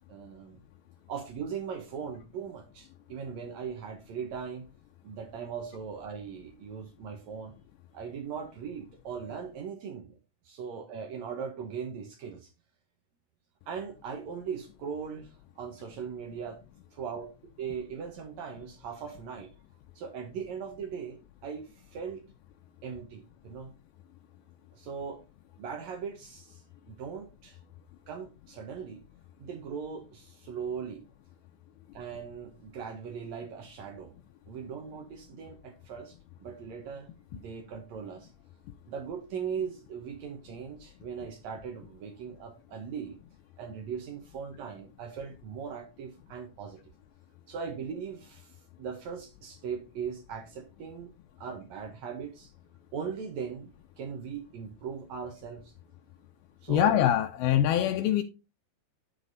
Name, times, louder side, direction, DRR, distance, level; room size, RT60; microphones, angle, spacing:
voice 1, 0.1-0.6 1.1-4.6 5.0-7.5 7.9-10.2 10.4-12.5 13.7-16.6 16.9-17.3 17.6-19.5 19.9-22.2 22.8-23.7 24.7-25.2 25.6-27.6 28.1-29.0 29.4-31.0 31.9-34.1 34.5-38.3 38.9-43.2 43.6-46.8 47.5-51.1 51.4-52.5 52.9-55.7 56.6-57.0, right 6 dB, 70° right, 1.7 m, -39 dB
voice 2, 56.7-58.2, left 11 dB, 80° left, 2.3 m, -24 dB
11.5 x 4.1 x 3.9 m
omnidirectional pair, 4.6 m